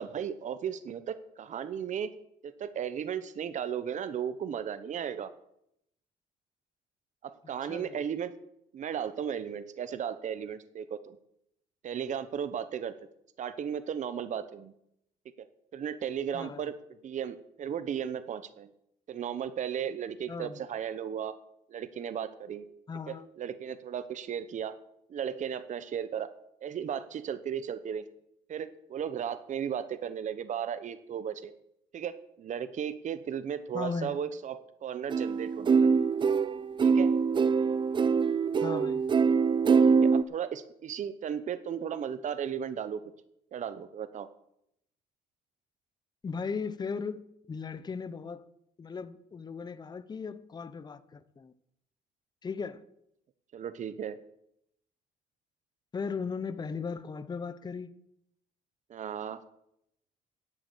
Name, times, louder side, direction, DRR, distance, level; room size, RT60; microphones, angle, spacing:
voice 1, 0.0-2.2 2.4-5.3 7.2-8.3 8.7-11.2 11.8-12.9 13.4-14.7 15.4-15.5 15.7-16.7 17.0-18.7 19.1-21.3 21.7-22.6 23.1-24.8 25.1-26.3 26.6-28.0 28.5-31.5 31.9-35.9 36.8-37.1 39.9-43.0 43.5-44.3 53.5-54.2 58.9-59.4, right 8 dB, 45° right, 1.0 m, -35 dB
voice 2, 7.4-8.0 16.3-16.7 20.3-20.7 22.9-23.3 33.7-34.2 38.6-39.0 46.2-48.5 48.8-51.5 52.4-52.8 55.9-57.9, left 5 dB, 25° left, 0.8 m, -37 dB
sound 1, 35.1-40.2, right 5 dB, 30° right, 0.5 m, -24 dB
11.0 x 8.2 x 8.1 m
cardioid pair, 110°, 17 cm